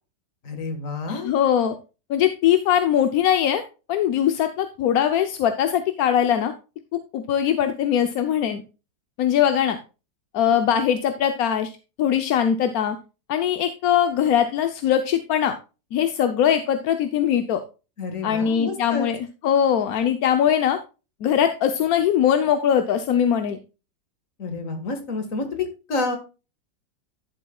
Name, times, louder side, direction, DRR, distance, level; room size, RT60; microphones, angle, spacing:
voice 1, 0.4-1.3 18.0-19.1 24.4-26.2, left 3 dB, 50° left, 6 dB, 2.0 m, -29 dB
voice 2, 1.1-1.7 2.1-3.6 3.9-6.5 6.9-8.6 9.2-9.8 10.3-11.7 12.0-13.0 13.3-15.5 15.9-17.6 18.2-20.8 21.2-23.6, left 9 dB, 65° left, 8 dB, 1.0 m, -21 dB
12.0 x 7.2 x 2.3 m, 0.31 s
omnidirectional pair, 1.9 m